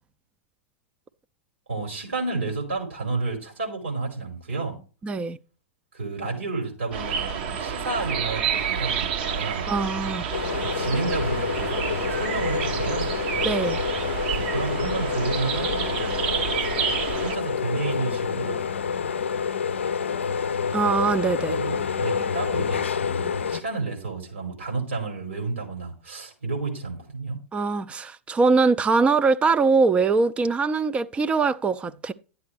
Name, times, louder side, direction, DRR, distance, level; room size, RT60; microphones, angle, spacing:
voice 1, 1.7-4.8 5.9-9.7 10.6-13.1 14.3-16.5 17.2-18.6 21.4-27.4, right 3 dB, 80° right, 4.8 m, -31 dB
voice 2, 5.0-5.4 9.7-10.3 13.4-13.8 20.7-21.6 27.5-32.1, right 4 dB, 15° right, 0.5 m, -22 dB
sound 1, 6.9-17.4, right 7 dB, 55° right, 1.1 m, -29 dB
sound 2, 10.3-23.6, left 6 dB, 70° left, 0.5 m, -28 dB
12.0 x 8.3 x 3.4 m
figure-of-eight pair, 95°, 7 cm